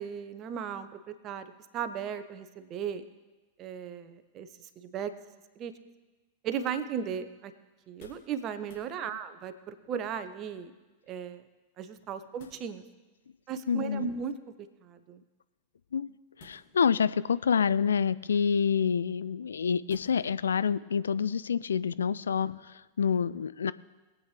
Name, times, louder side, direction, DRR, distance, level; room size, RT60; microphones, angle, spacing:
voice 1, 0.0-3.0 3.6-5.1 5.6-5.7 6.4-7.5 7.9-10.7 11.1-11.5 11.8-12.8 13.5-14.3 14.8-15.2, right 7 dB, 35° right, 11 dB, 0.9 m, -36 dB
sound 1, 7.8-8.3 8.6-8.9 10.0-10.5 11.9-12.6 13.9-14.3 16.3-17.0 17.7-18.2 19.9-20.4 20.8-20.9, left 3 dB, 55° left, 2.6 m, -56 dB
voice 2, 13.7-14.1 15.9-16.1 16.4-23.7, left 6 dB, 70° left, 16 dB, 0.3 m, -27 dB
22.0 x 8.5 x 3.3 m, 1.2 s
figure-of-eight pair, 90°, 0 cm